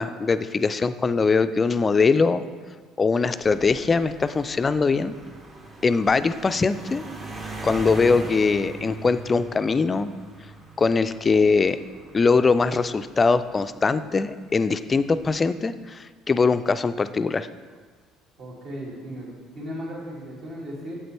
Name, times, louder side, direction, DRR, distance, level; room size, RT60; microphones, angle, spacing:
voice 1, 0.0-2.4 3.0-5.1 5.8-7.0 7.6-10.1 10.8-11.8 12.1-17.5, left 4 dB, 30° left, 13 dB, 0.3 m, -22 dB
sound 1, 3.4-14.1 14.9-15.3, right 2 dB, 30° right, 1.1 m, -40 dB
voice 2, 18.4-20.9, equal, 50° right, -4 dB, 2.5 m, -36 dB
7.9 x 7.6 x 3.3 m, 1.5 s
hypercardioid pair, 55°, 0 cm